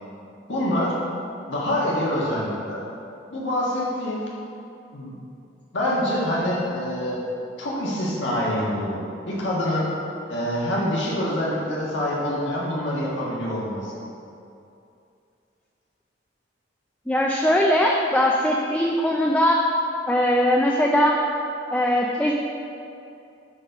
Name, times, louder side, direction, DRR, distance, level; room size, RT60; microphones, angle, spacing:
voice 1, 0.5-0.9 1.5-2.8 3.3-4.2 4.9-5.1 5.7-7.2 7.6-9.9 10.3-14.0, left 1 dB, 85° left, -5 dB, 1.6 m, -25 dB
voice 2, 17.1-19.6 20.1-21.1 21.7-22.3, left 1 dB, 5° left, -1 dB, 0.4 m, -20 dB
8.6 x 4.0 x 5.8 m, 2.6 s
head